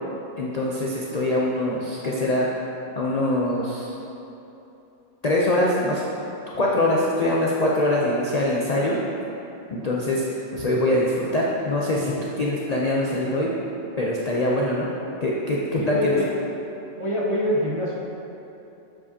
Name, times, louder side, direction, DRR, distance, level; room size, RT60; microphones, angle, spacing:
voice 1, 0.4-2.5 2.9-3.9 5.2-6.1 6.6-9.0 9.7-13.5 14.0-14.9 15.2-16.2, left 1 dB, 55° left, -4 dB, 0.4 m, -23 dB
voice 2, 15.8-16.3 17.0-18.0, left 1 dB, 35° right, -6 dB, 0.5 m, -24 dB
7.7 x 7.2 x 2.8 m, 2.9 s
omnidirectional pair, 1.6 m